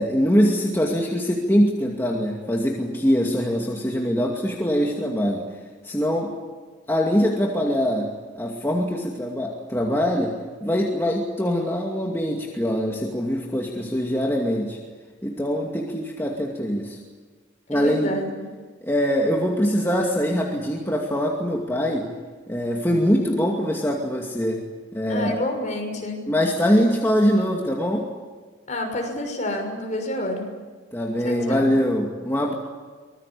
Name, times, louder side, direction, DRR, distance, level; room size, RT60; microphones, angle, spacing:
voice 1, 0.0-5.4 5.8-6.3 6.9-8.1 8.3-10.4 10.6-14.8 15.2-17.0 17.7-18.1 18.8-22.1 22.5-24.6 24.9-25.4 26.3-28.1 30.9-32.5, equal, 10° left, -1 dB, 2.4 m, -23 dB
voice 2, 17.7-18.4 25.1-26.2 28.7-30.5 31.2-31.7, left 1 dB, 40° left, 4 dB, 6.2 m, -28 dB
25.0 x 21.0 x 8.6 m, 1.4 s
head